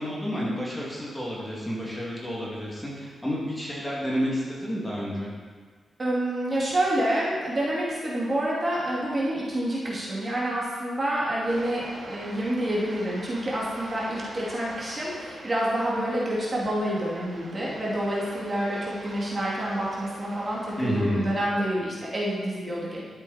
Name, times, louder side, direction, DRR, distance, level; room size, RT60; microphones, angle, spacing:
voice 1, 0.0-5.3 20.8-21.3, equal, 10° left, -6 dB, 2.6 m, -30 dB
voice 2, 6.0-23.0, right 1 dB, 30° right, -6 dB, 2.5 m, -28 dB
sound 1, 11.5-21.8, right 1 dB, 50° right, 2.4 m, -44 dB
12.5 x 7.2 x 4.3 m, 1.5 s
cardioid pair, 105°, 0 cm